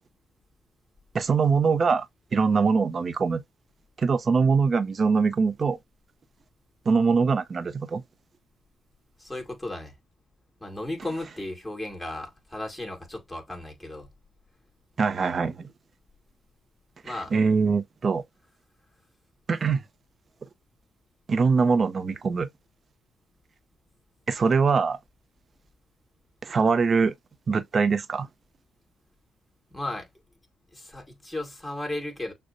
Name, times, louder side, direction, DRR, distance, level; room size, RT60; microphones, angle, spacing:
voice 1, 1.1-2.1 2.3-3.4 4.0-5.8 6.9-8.0 15.0-15.7 17.1-18.2 19.5-19.8 21.3-22.5 24.3-25.0 26.4-27.1 27.5-28.3, right 5 dB, 40° right, 0.6 m, -23 dB
voice 2, 9.2-10.0 10.6-14.1 17.0-17.3 29.7-30.1 30.7-32.3, left 1 dB, 10° left, 2.3 m, -35 dB
6.4 x 2.2 x 2.5 m
cardioid pair, 90°, 0 cm